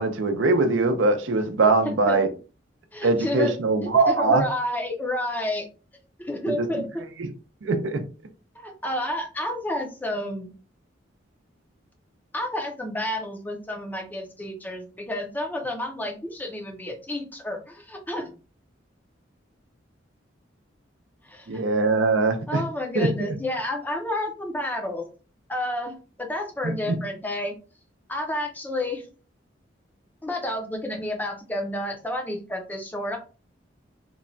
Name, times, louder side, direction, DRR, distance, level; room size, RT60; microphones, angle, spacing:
voice 1, 0.0-2.3 3.0-4.5 6.5-6.8 7.6-8.0 21.5-22.6 22.9-23.1 26.6-26.9, right 3 dB, 80° right, 7 dB, 0.5 m, -22 dB
voice 2, 1.8-2.2 2.9-3.5 3.8-5.7 6.2-7.0 8.6-10.5 12.3-18.4 21.3-21.6 22.5-25.1 25.5-27.5 28.1-29.0 30.2-33.2, left 1 dB, 10° left, 2 dB, 0.4 m, -30 dB
2.9 x 2.1 x 2.5 m, 0.35 s
head